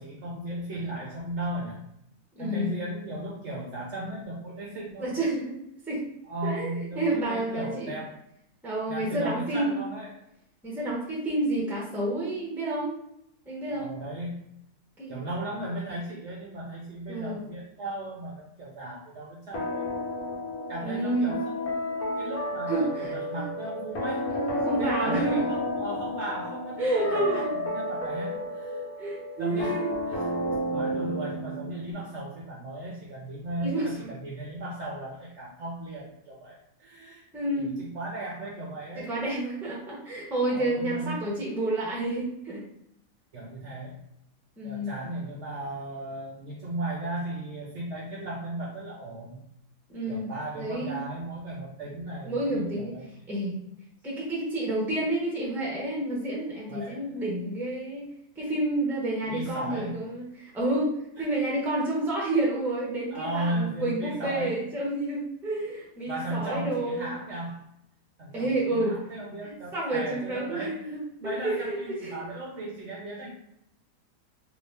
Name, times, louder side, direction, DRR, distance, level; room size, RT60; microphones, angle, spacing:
voice 1, 0.0-1.8 2.4-5.2 6.3-8.2 8.9-10.2 13.7-14.4 15.1-19.9 20.7-24.4 24.7-28.8 29.4-30.3 30.7-37.3 37.5-39.1 40.5-41.3 43.3-44.0 44.6-49.4 50.1-53.1 56.7-57.2 59.3-60.0 61.2-61.3 63.1-64.7 66.1-67.6 68.2-73.3, right 1 dB, 60° right, -3 dB, 0.8 m, -36 dB
voice 2, 2.3-2.8 5.0-5.6 5.9-6.0 6.4-8.0 8.6-9.8 10.6-12.9 13.4-14.0 15.0-15.2 17.1-17.4 20.8-21.4 22.7-23.4 24.3-25.5 26.8-27.5 29.0-29.9 33.6-34.1 37.3-37.7 39.0-42.6 44.6-45.0 49.9-50.3 50.6-51.0 52.2-52.9 53.3-53.6 54.0-58.1 58.4-67.1 68.3-69.0 69.4-72.2, right 1 dB, ahead, -5 dB, 0.6 m, -29 dB
sound 1, 19.5-31.9, equal, 70° left, 1.5 m, -32 dB
2.9 x 2.7 x 3.2 m, 0.77 s
omnidirectional pair, 1.7 m